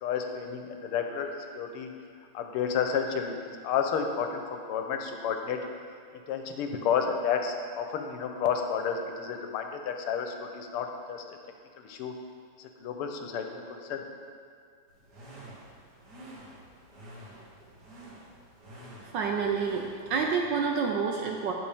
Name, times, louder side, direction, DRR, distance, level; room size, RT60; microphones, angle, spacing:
voice 1, 0.0-1.9 2.3-3.3 3.6-5.6 6.1-11.2 11.8-12.1 12.6-14.0, left 7 dB, 85° left, 5 dB, 1.6 m, -31 dB
sound 1, 14.9-20.3, right 1 dB, 50° right, 2.0 m, -49 dB
voice 2, 19.1-21.5, right 5 dB, 75° right, 1 dB, 1.1 m, -28 dB
9.9 x 6.7 x 3.4 m, 2.2 s
omnidirectional pair, 2.4 m